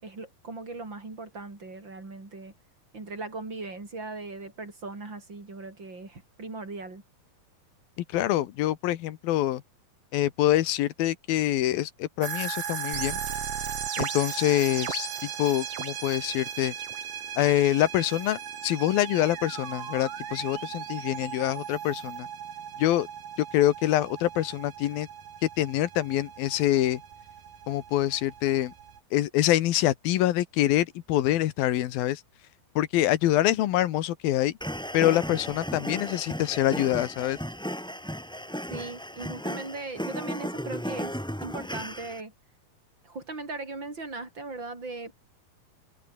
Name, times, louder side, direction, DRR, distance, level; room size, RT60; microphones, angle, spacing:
voice 1, 0.0-2.5 2.9-7.0 38.7-42.3 43.0-45.1, right 3 dB, 30° right, 6.4 m, -39 dB
voice 2, 8.1-9.6 10.1-13.2 14.0-16.7 17.4-22.3 22.8-23.1 23.4-25.1 25.4-27.0 27.7-28.7 29.1-32.2 32.8-34.5 34.9-37.4, left 14 dB, 75° left, 2.9 m, -25 dB
sound 1, 12.2-29.0, right 8 dB, 70° right, 4.5 m, -38 dB
sound 2, 12.9-16.2 16.5-17.0 18.0-22.2, right 7 dB, 45° right, 2.8 m, -40 dB
sound 3, 34.6-42.2, equal, ahead, 3.6 m, -35 dB
omnidirectional pair, 4.4 m